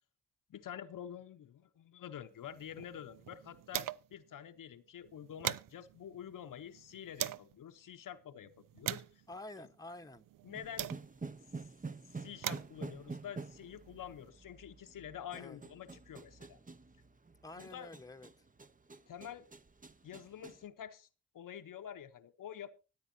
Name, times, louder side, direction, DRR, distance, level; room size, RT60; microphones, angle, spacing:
voice 1, 0.5-9.2 10.4-10.9 12.2-16.6 17.6-17.9 19.1-19.5 20.0-21.1 21.3-22.7, left 9 dB, 70° left, 0.9 m, -48 dB
sound 1, 2.4-4.3 4.6-4.7 5.0-7.5 8.2-11.4 12.1-14.3, right 13 dB, 75° right, 0.5 m, -43 dB
voice 2, 9.3-10.3 15.3-15.6 17.4-18.4, left 2 dB, 10° left, 1.0 m, -49 dB
sound 2, 10.5-20.7, right 4 dB, 25° right, 0.9 m, -48 dB
24.5 x 8.4 x 2.7 m
supercardioid pair, 45°, 33 cm